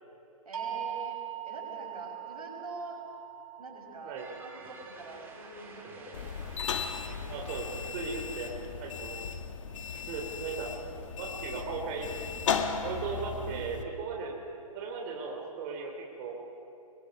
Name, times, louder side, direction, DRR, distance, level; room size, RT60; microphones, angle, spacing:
voice 1, 0.4-1.2 1.4-3.0 3.6-6.2 7.1-7.7 9.9-10.3, right 2 dB, 85° right, 0 dB, 6.4 m, -45 dB
sound 1, 0.5-6.5, right 11 dB, 70° right, 6.1 m, -42 dB
sound 2, 4.2-9.2, right 3 dB, 10° right, 2.9 m, -52 dB
sound 3, 6.1-13.8, left 6 dB, 55° left, 1.8 m, -36 dB
voice 2, 7.3-7.7 7.9-8.5 8.8-9.1 10.1-10.7 11.2-12.1 12.8-14.3 14.7-15.9 16.2-16.3, right 5 dB, 30° right, 0 dB, 3.1 m, -37 dB
28.0 x 22.5 x 5.3 m, 3.0 s
hypercardioid pair, 135°, 19 cm